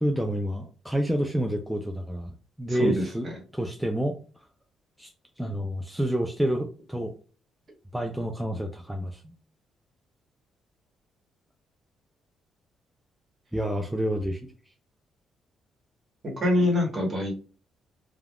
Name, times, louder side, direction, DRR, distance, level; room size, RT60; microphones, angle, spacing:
voice 1, 0.0-3.3 3.5-4.2 5.0-5.1 5.4-7.1 7.9-9.3 13.5-14.4, equal, ahead, 3 dB, 0.4 m, -28 dB
voice 2, 2.7-3.3 16.4-17.3, left 1 dB, 40° right, 0 dB, 1.2 m, -25 dB
3.3 x 2.3 x 2.3 m, 0.37 s
cardioid pair, 90°, 0 cm